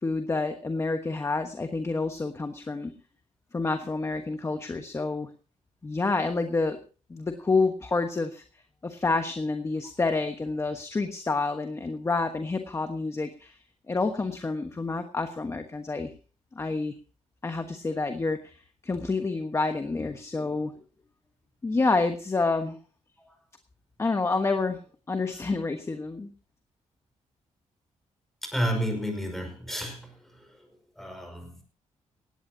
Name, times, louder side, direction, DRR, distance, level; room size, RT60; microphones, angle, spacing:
voice 1, 0.0-2.9 3.5-5.3 5.8-6.8 7.1-8.4 8.8-13.6 13.9-16.1 16.5-16.9 17.4-20.7 21.6-22.8 24.0-24.8 25.1-26.3, left 3 dB, 20° left, 7 dB, 1.3 m, -28 dB
voice 2, 28.4-30.1 31.0-31.6, equal, ahead, 4 dB, 5.6 m, -31 dB
18.5 x 17.0 x 2.8 m, 0.37 s
cardioid pair, 140°, 13 cm